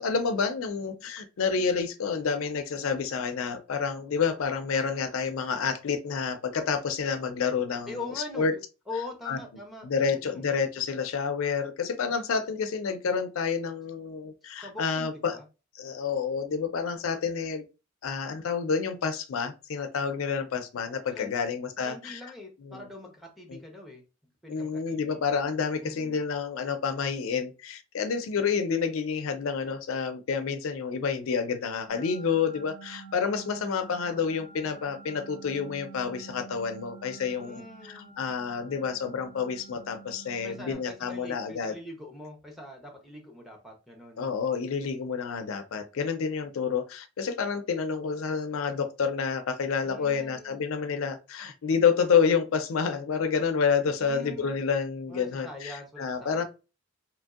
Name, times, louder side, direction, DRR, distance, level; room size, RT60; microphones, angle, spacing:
voice 1, 0.0-8.0 8.4-8.5 9.3-9.4 9.8-15.4 15.7-17.6 18.0-22.2 22.6-22.8 23.5-23.6 24.5-41.7 44.2-56.4, left 6 dB, 70° left, 0.4 m, -29 dB
voice 2, 7.9-8.6 8.9-10.4 14.6-15.4 21.1-21.5 21.8-24.0 24.4-25.2 25.8-26.2 37.3-38.2 40.4-44.2 49.8-50.6 54.0-54.6 55.1-56.4, left 2 dB, ahead, 0.7 m, -43 dB
sound 1, 31.9-40.7, right 4 dB, 90° right, 1.6 m, -48 dB
3.0 x 2.6 x 2.3 m
head